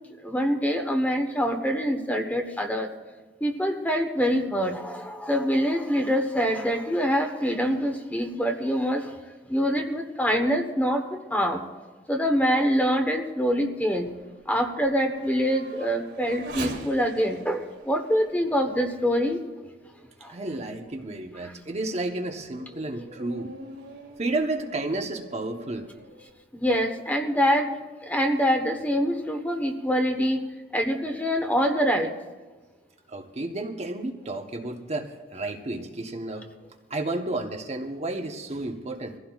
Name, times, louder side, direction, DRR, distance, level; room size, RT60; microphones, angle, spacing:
voice 1, 0.2-2.9 3.4-9.1 9.5-11.6 12.1-14.1 14.5-19.4 20.2-20.3 26.5-27.7 28.0-30.4 30.7-32.1, equal, 10° left, 4 dB, 1.1 m, -25 dB
Race car auto racing / Accelerating revving vroom, 13.5-20.2 20.8-20.9 21.5-26.3, right 2 dB, 75° right, 2.6 m, -44 dB
voice 2, 20.2-23.6 24.2-25.9 33.1-36.5 36.9-39.2, right 2 dB, 40° right, 4 dB, 0.9 m, -32 dB
23.0 x 15.5 x 2.4 m, 1.3 s
head